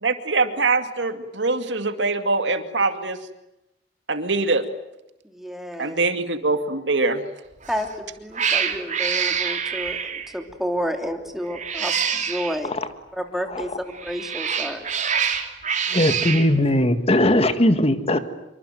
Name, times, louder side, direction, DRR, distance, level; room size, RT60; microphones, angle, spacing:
voice 1, 0.0-3.2 4.1-4.6 5.8-7.2, right 3 dB, 85° right, 8 dB, 2.4 m, -23 dB
voice 2, 5.2-6.0 7.7-12.7 13.1-14.9, equal, ahead, 5 dB, 3.1 m, -30 dB
Cat, 7.6-7.9 8.3-10.4 11.5-12.6 13.9-16.5, right 7 dB, 45° right, 3.0 m, -26 dB
voice 3, 15.9-18.2, left 1 dB, 35° left, 10 dB, 1.8 m, -19 dB
26.0 x 24.5 x 9.3 m, 0.92 s
head